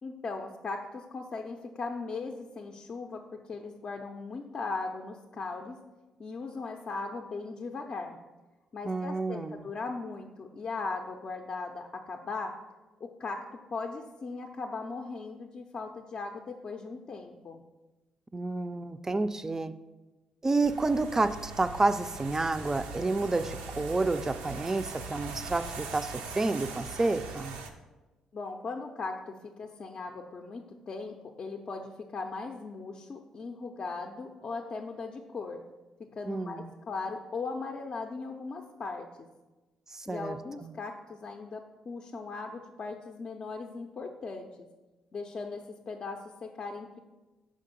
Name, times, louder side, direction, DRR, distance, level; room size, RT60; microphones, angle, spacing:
voice 1, 0.0-5.8 6.2-8.2 8.7-12.6 13.0-13.4 13.7-17.6 28.3-35.6 36.0-39.3 40.1-44.7 45.1-47.0, left 4 dB, 45° left, 2 dB, 0.5 m, -38 dB
voice 2, 8.8-9.7 18.3-19.7 20.4-27.6 36.3-36.7 39.9-40.7, right 3 dB, 25° right, 11 dB, 0.4 m, -30 dB
sound 1, 20.6-27.7, right 4 dB, 85° right, 0.5 m, -41 dB
5.3 x 3.8 x 5.1 m, 1.2 s
hypercardioid pair, 50°, 2 cm